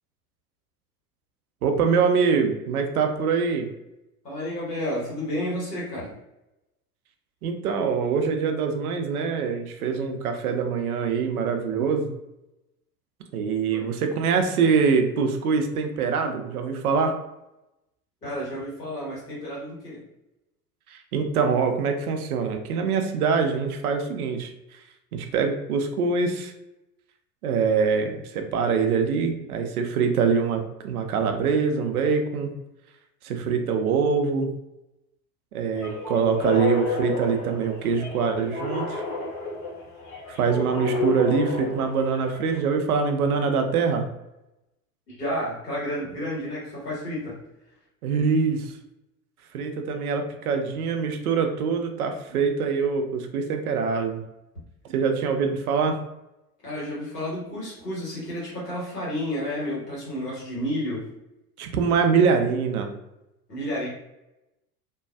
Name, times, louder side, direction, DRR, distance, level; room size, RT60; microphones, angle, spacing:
voice 1, 1.6-3.7 7.4-12.1 13.3-17.1 20.9-24.5 25.1-26.5 27.4-32.5 33.2-34.5 35.5-39.0 40.3-44.0 48.0-48.7 49.5-54.2 54.9-56.0 61.6-62.9, right 5 dB, 65° right, 5 dB, 0.5 m, -24 dB
voice 2, 4.2-6.1 13.7-13.8 18.2-20.0 45.1-47.4 56.6-61.0 63.5-63.9, equal, 80° left, -7 dB, 1.4 m, -31 dB
sound 1, 35.7-42.6, left 4 dB, 35° left, 1.4 m, -31 dB
2.6 x 2.2 x 2.3 m, 0.93 s
figure-of-eight pair, 75°, 48 cm